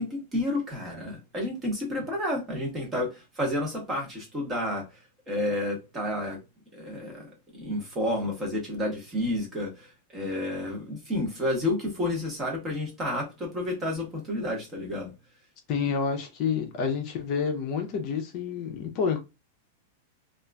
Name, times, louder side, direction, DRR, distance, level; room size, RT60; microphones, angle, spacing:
voice 1, 0.0-4.8 5.3-6.4 6.7-15.1, left 1 dB, 15° right, 1.0 m, -30 dB
voice 2, 15.7-19.2, left 6 dB, 35° left, 0.6 m, -28 dB
2.8 x 2.4 x 2.3 m
supercardioid pair, 165°, 0 cm